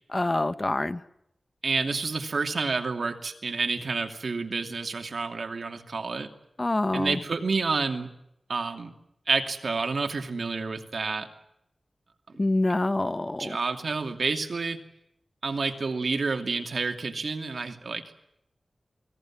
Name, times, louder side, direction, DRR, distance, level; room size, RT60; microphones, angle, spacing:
voice 1, 0.1-1.0 6.6-7.2 12.4-13.6, left 2 dB, 30° left, 13 dB, 1.1 m, -26 dB
voice 2, 1.6-6.3 6.9-8.1 8.5-8.9 9.3-11.3 12.3-12.4 13.4-14.8 15.4-18.0, right 4 dB, 70° right, 5 dB, 2.8 m, -29 dB
29.0 x 21.0 x 7.5 m, 0.80 s
wide cardioid pair, 70°, 0 cm